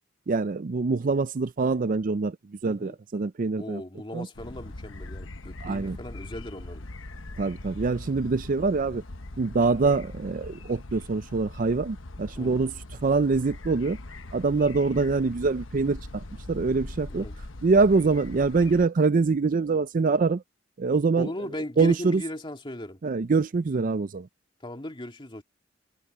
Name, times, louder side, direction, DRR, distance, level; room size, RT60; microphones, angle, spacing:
voice 1, 0.3-2.4 2.6-3.8 4.1-4.3 5.6-6.0 7.4-9.0 9.4-12.7 13.0-14.0 14.3-17.3 17.6-20.4 20.8-21.3 21.8-22.2 23.0-24.3, right 4 dB, 45° right, 0.5 m, -24 dB
voice 2, 2.6-3.0 3.6-6.9 12.3-12.7 17.1-17.4 21.1-23.0 24.6-25.4, left 1 dB, 25° left, 2.4 m, -37 dB
sound 1, 4.3-18.9, left 2 dB, 85° left, 1.2 m, -41 dB
head